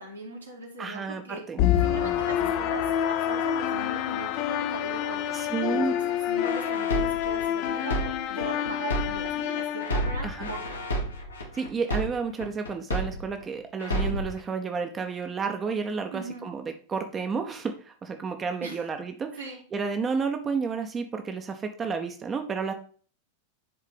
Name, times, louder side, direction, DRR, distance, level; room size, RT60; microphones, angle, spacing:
voice 1, 0.0-1.4 1.8-10.6 16.1-16.5 18.6-18.8 19.4-19.6, right 2 dB, 80° right, -1 dB, 1.9 m, -39 dB
voice 2, 0.8-1.6 5.3-5.9 10.2-10.5 11.5-22.7, right 5 dB, 20° right, 6 dB, 0.6 m, -31 dB
sound 1, 1.6-10.6, left 10 dB, 40° left, 0.5 m, -28 dB
sound 2, 6.4-9.4 9.8-13.4 13.8-14.4, right 1 dB, 75° left, 1.1 m, -31 dB
10.0 x 3.7 x 3.4 m, 0.42 s
figure-of-eight pair, 90°, 0 cm